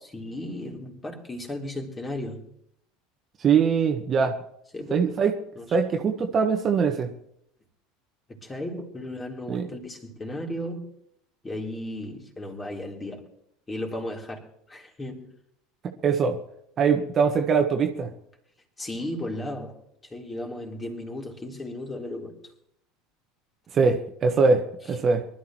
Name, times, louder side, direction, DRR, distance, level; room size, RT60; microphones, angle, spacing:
voice 1, 0.1-2.5 4.7-5.1 5.6-5.8 8.3-10.9 11.4-13.2 13.7-15.3 18.8-19.8 20.0-22.4, left 1 dB, 20° left, 1 dB, 3.8 m, -35 dB
voice 2, 3.4-4.4 4.9-5.4 5.7-7.1 9.5-9.7 15.8-16.4 16.8-18.1 23.7-25.3, right 5 dB, 35° right, 4 dB, 1.5 m, -22 dB
24.0 x 12.5 x 3.1 m, 0.72 s
figure-of-eight pair, 70°, 0 cm